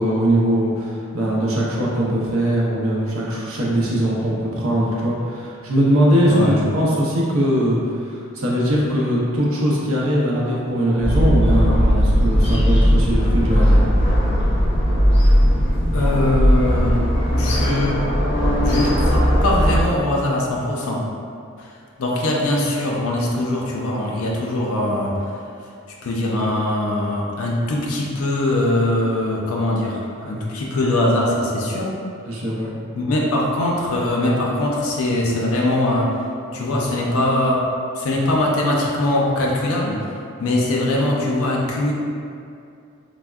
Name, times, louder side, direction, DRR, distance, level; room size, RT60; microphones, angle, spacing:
voice 1, 0.0-13.9 32.3-32.7, equal, 70° right, -5 dB, 0.6 m, -21 dB
voice 2, 6.3-6.6 15.9-17.0 17.3-18.1 18.6-21.1 21.6-21.7 22.0-25.3 26.0-31.9 32.9-36.1 36.5-37.7 37.9-40.0 40.4-41.9, left 1 dB, 70° left, -3 dB, 0.4 m, -21 dB
sound 1, 11.0-19.9, equal, 25° left, 0.6 m, -17 dB
3.4 x 2.0 x 2.3 m, 2.4 s
head